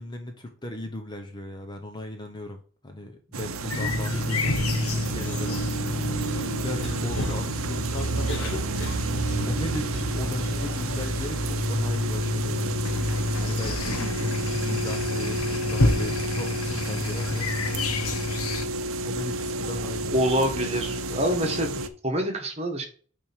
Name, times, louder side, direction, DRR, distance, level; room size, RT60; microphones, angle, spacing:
voice 1, 0.0-8.6 9.4-17.5 19.0-20.1, left 1 dB, 20° left, 4 dB, 0.8 m, -37 dB
sound 1, 3.3-21.9, right 3 dB, 80° right, 0.7 m, -31 dB
sound 2, 3.7-18.7, left 2 dB, 90° left, 1.0 m, -29 dB
Cough, 6.6-9.5, left 3 dB, 55° left, 1.0 m, -40 dB
voice 2, 20.1-22.8, equal, 30° right, 3 dB, 1.5 m, -26 dB
9.0 x 3.5 x 4.5 m, 0.42 s
head